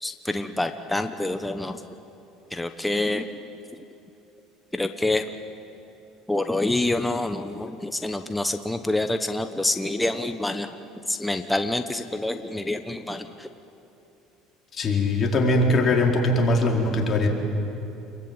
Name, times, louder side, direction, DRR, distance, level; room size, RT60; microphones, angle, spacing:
voice 1, 0.0-1.8 2.5-3.2 4.7-5.2 6.3-10.7 11.1-13.5, left 2 dB, 5° left, 7 dB, 1.1 m, -27 dB
voice 2, 14.7-17.3, left 2 dB, 35° left, 0 dB, 4.4 m, -21 dB
28.5 x 22.0 x 9.0 m, 2.9 s
supercardioid pair, 110°, 0 cm